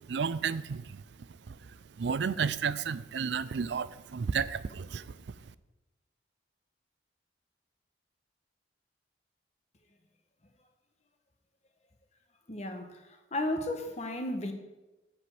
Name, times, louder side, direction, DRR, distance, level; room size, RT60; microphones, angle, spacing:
voice 1, 0.1-1.0 1.5-1.6 2.0-5.2, right 6 dB, 65° right, 16 dB, 0.4 m, -32 dB
voice 2, 12.5-13.0 13.3-14.5, left 1 dB, 35° left, 6 dB, 1.0 m, -33 dB
8.4 x 5.1 x 7.5 m, 1.1 s
head